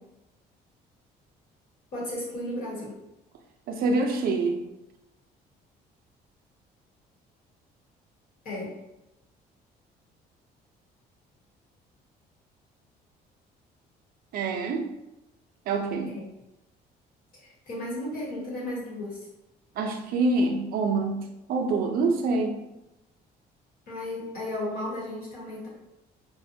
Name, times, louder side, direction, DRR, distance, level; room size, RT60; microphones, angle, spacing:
voice 1, 1.9-2.9 8.4-8.7 16.1-16.2 17.3-19.2 23.9-25.7, left 1 dB, 60° left, -5 dB, 1.2 m, -34 dB
voice 2, 3.7-4.6 14.3-14.9 15.7-16.2 19.8-22.6, right 3 dB, 60° right, 3 dB, 0.4 m, -26 dB
2.6 x 2.1 x 2.6 m, 0.93 s
cardioid pair, 110°, 17 cm